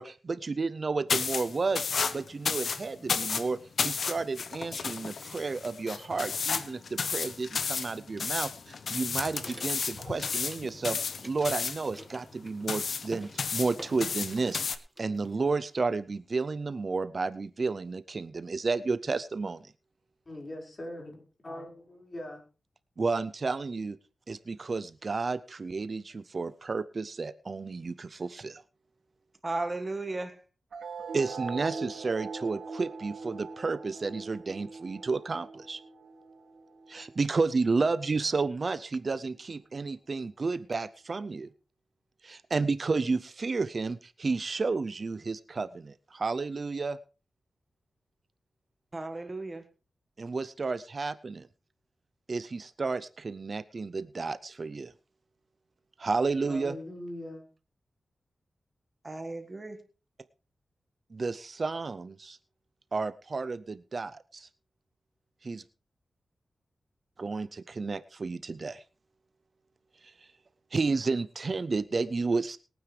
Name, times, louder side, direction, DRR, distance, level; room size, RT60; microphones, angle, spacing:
voice 1, 0.0-1.9 2.1-11.0 11.2-19.7 23.0-24.0 24.3-28.6 31.1-35.8 36.9-41.5 42.2-47.0 50.2-51.5 52.3-54.9 56.0-56.8 61.1-62.4 62.9-64.5 65.4-65.6 67.2-68.8 70.0-70.3 70.7-72.6, right 4 dB, 45° right, 0.5 m, -32 dB
sound 1, 1.1-14.8, left 5 dB, 70° left, 1.0 m, -33 dB
sound 2, 8.2-10.8 11.0-12.7 13.0-13.3 13.8-14.7 15.0-15.7, right 1 dB, 5° right, 1.5 m, -49 dB
voice 2, 20.3-21.2 21.4-22.4 56.5-57.4, left 1 dB, 35° left, 4.9 m, -41 dB
voice 3, 29.4-30.4 48.9-49.6 59.0-59.8, right 2 dB, 30° right, 1.6 m, -35 dB
sound 3, 30.7-37.7, right 4 dB, 85° right, 2.5 m, -42 dB
22.0 x 9.3 x 3.3 m
wide cardioid pair, 90°, 0 cm